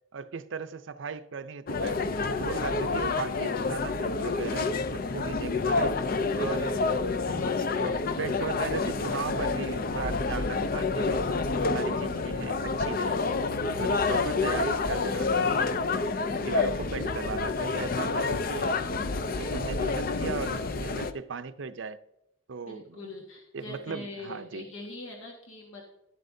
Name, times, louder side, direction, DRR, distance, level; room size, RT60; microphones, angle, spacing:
voice 1, 0.1-2.0 2.3-6.0 6.4-6.8 7.3-13.2 13.6-15.8 16.3-18.8 19.4-22.0 22.5-23.1 23.5-24.7, right 5 dB, 65° right, 0.5 m, -37 dB
sound 1, 1.7-21.1, left 4 dB, 45° left, 0.5 m, -28 dB
voice 2, 22.7-25.9, left 2 dB, 90° left, 1.6 m, -42 dB
12.0 x 11.0 x 2.7 m
head